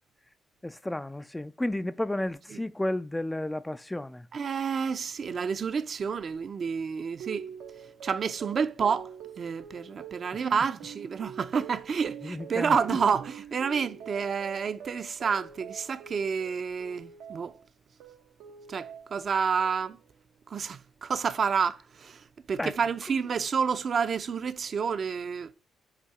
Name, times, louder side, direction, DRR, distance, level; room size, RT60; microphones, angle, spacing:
voice 1, 0.6-4.3 10.3-10.5 12.2-13.0 22.6-22.7, left 1 dB, 10° left, 0.3 m, -32 dB
voice 2, 4.3-7.5 8.0-9.1 9.4-17.5 18.7-20.0 20.5-22.2 22.5-25.5, right 6 dB, 50° right, 0.5 m, -29 dB
sound 1, 7.2-17.6 18.0-19.2 19.6-20.1, right 7 dB, 90° right, 0.9 m, -45 dB
8.1 x 2.8 x 4.7 m
cardioid pair, 90°, 0 cm